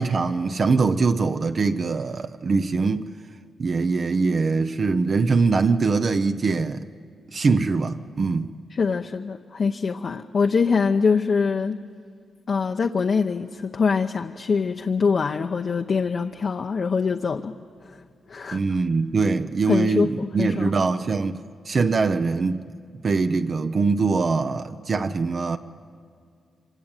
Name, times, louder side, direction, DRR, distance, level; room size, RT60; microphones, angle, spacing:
voice 1, 0.0-3.0 3.6-6.9 7.3-8.5 18.5-22.7 23.0-25.6, right 4 dB, 40° right, 0.7 m, -22 dB
voice 2, 8.7-11.8 12.5-17.5 17.8-18.0 18.3-18.6 19.7-20.7, left 5 dB, 45° left, 0.8 m, -24 dB
26.0 x 25.5 x 9.0 m
wide cardioid pair, 120°, 0 cm